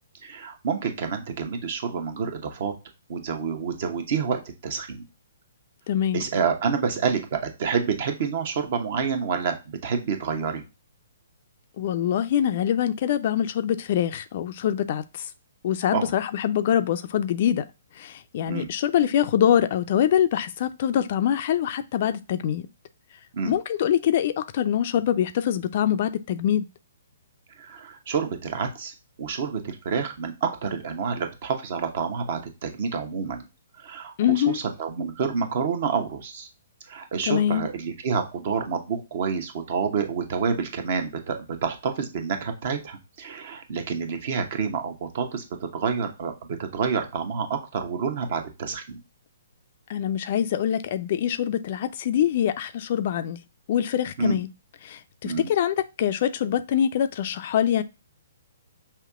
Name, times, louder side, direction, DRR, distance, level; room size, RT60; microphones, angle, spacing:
voice 1, 0.2-2.7 3.1-5.0 6.1-10.6 15.9-16.1 18.5-18.7 23.3-23.5 27.6-33.5 33.8-36.5 36.9-46.3 46.6-49.0 54.2-54.4 55.2-55.5, right 6 dB, 45° right, 0.9 m, -28 dB
voice 2, 5.9-6.2 11.8-15.3 15.6-17.6 18.0-22.7 23.4-26.7 34.2-34.6 37.3-37.7 49.9-53.4 53.7-54.5 54.8-57.8, left 10 dB, 45° left, 0.4 m, -24 dB
5.7 x 2.8 x 2.3 m
figure-of-eight pair, 125°, 0 cm